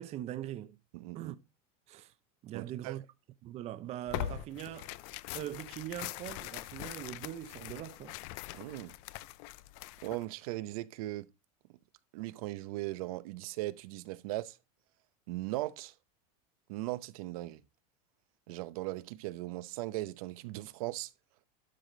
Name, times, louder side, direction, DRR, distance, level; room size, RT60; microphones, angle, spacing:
voice 1, 0.0-0.8 1.1-1.4 1.9-2.1 2.4-3.0 3.4-5.0 5.3-8.1, right 12 dB, 35° right, 0.8 m, -41 dB
voice 2, 0.9-1.3 2.5-3.0 8.5-8.9 10.0-11.3 12.1-14.6 15.3-15.9 16.7-17.6 18.5-21.1, right 18 dB, 75° right, 0.8 m, -38 dB
Tearing, 4.1-10.2, left 15 dB, 60° left, 0.6 m, -42 dB
12.0 x 5.0 x 3.9 m
supercardioid pair, 145°, 19 cm